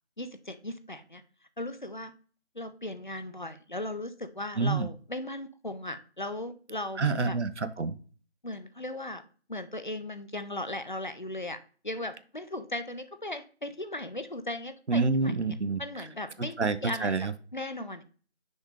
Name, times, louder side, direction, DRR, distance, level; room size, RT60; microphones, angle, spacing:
voice 1, 0.2-1.2 1.6-2.1 2.5-7.4 8.4-9.2 9.5-11.6 11.8-15.3 15.8-18.0, left 1 dB, 45° left, 11 dB, 0.5 m, -37 dB
voice 2, 4.6-4.9 7.0-8.0 14.9-15.8 16.6-17.3, right 4 dB, 90° right, 13 dB, 0.8 m, -27 dB
6.3 x 4.9 x 3.3 m, 0.40 s
figure-of-eight pair, 175°, 33 cm